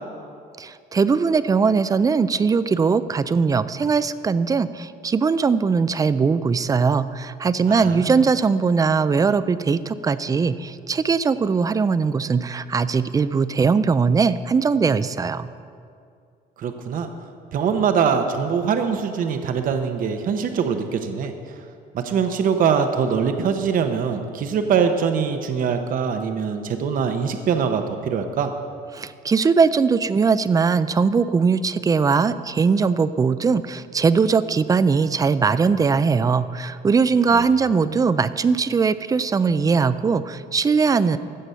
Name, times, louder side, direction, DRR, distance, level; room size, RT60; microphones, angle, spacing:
voice 1, 0.6-15.5 28.9-41.2, right 5 dB, 20° right, 14 dB, 0.4 m, -20 dB
voice 2, 7.7-8.2 16.6-17.1 17.5-21.3 21.9-28.5 37.3-37.4 37.8-37.9, right 6 dB, 55° right, 6 dB, 0.9 m, -23 dB
15.5 x 6.6 x 5.6 m, 2.3 s
cardioid pair, 110°, 17 cm